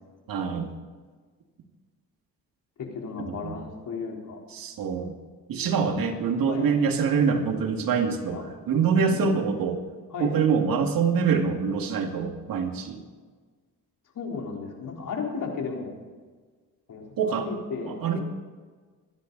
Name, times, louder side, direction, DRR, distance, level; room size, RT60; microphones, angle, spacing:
voice 1, 0.3-0.7 3.2-3.5 4.5-5.1 5.5-9.8 10.2-13.0 17.2-17.5 17.9-18.2, right 6 dB, 70° right, 4 dB, 2.3 m, -25 dB
voice 2, 2.8-4.4 5.6-6.1 6.5-6.7 8.2-8.4 8.7-9.6 10.1-10.4 14.2-16.0 16.9-17.1 17.4-18.2, left 5 dB, 60° left, 0 dB, 3.9 m, -35 dB
25.0 x 10.5 x 4.0 m, 1.4 s
cardioid pair, 85°, 36 cm